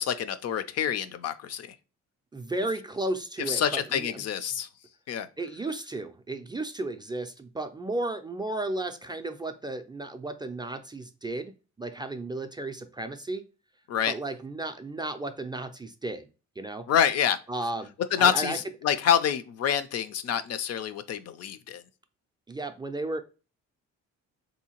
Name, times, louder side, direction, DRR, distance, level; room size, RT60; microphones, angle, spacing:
voice 1, 0.0-1.7 3.5-4.7 5.1-5.3 13.9-14.1 16.9-17.4 18.1-21.8, left 8 dB, 55° left, 0.4 m, -27 dB
voice 2, 2.3-4.2 5.4-11.5 11.8-13.4 14.1-16.3 16.6-16.9 17.5-17.9 18.2-18.6 22.5-23.2, right 2 dB, 15° right, 0.3 m, -34 dB
3.6 x 2.7 x 2.8 m
cardioid pair, 90°, 30 cm